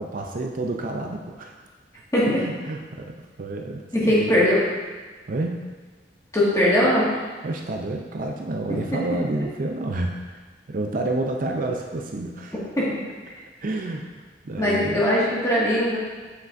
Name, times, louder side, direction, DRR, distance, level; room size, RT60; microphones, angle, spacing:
voice 1, 0.0-1.5 2.4-4.3 5.3-5.7 7.4-12.6 13.6-14.0 14.4-15.1, right 2 dB, 50° right, 2 dB, 0.5 m, -29 dB
voice 2, 2.1-2.5 3.9-4.6 6.3-7.1 8.9-9.0 12.8-13.0 14.6-16.0, left 1 dB, 20° left, -7 dB, 1.9 m, -20 dB
8.1 x 5.6 x 2.6 m, 1.4 s
head